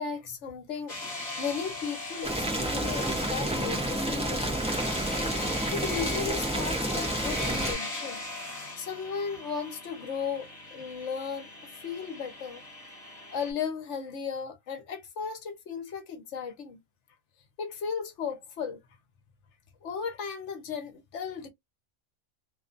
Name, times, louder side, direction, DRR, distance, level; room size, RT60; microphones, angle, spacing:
voice 1, 0.0-4.6 5.7-8.2 8.8-11.5 11.8-12.6 13.3-16.8 17.6-18.8 19.8-21.5, left 6 dB, 65° left, 1.1 m, -35 dB
sound 1, 0.9-13.5, left 2 dB, 30° left, 1.5 m, -39 dB
Boiling, 2.2-7.7, right 1 dB, 5° right, 0.6 m, -30 dB
2.9 x 2.3 x 2.5 m
omnidirectional pair, 1.4 m